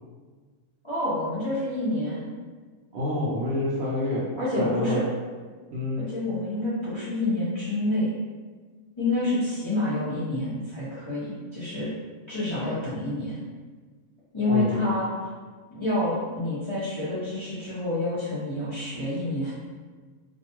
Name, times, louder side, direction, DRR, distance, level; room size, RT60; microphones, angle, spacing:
voice 1, 0.8-2.3 4.4-5.1 6.1-8.1 9.0-11.9 12.3-13.4 14.3-15.1 15.7-19.5, left 2 dB, 35° left, -12 dB, 0.4 m, -28 dB
voice 2, 2.9-5.0 5.7-6.0 14.5-14.8, left 1 dB, 65° right, -6 dB, 0.7 m, -28 dB
2.5 x 2.2 x 2.8 m, 1.4 s
omnidirectional pair, 1.4 m